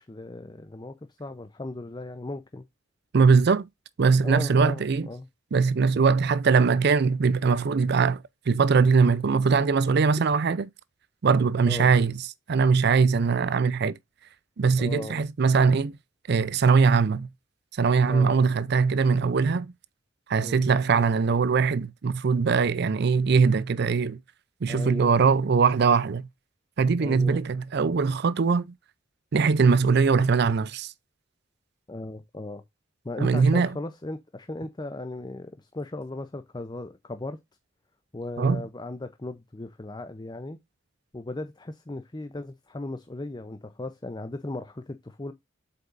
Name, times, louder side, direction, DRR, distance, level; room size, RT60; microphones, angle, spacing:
voice 1, 0.0-2.6 4.2-5.3 11.7-11.9 14.8-15.2 18.1-18.4 20.4-20.7 24.7-25.2 27.0-27.4 31.9-32.6 33.0-37.4 38.1-40.6 41.1-45.3, left 2 dB, 20° left, 0.6 m, -37 dB
voice 2, 3.1-3.7 4.0-5.1 5.5-10.7 11.2-12.2 12.5-14.0 14.6-15.9 16.3-17.3 17.7-19.7 20.3-24.2 24.6-26.3 26.8-28.7 29.3-30.9 33.2-33.7 38.4-38.6, right 5 dB, 60° right, 0.5 m, -21 dB
7.7 x 5.5 x 2.5 m
head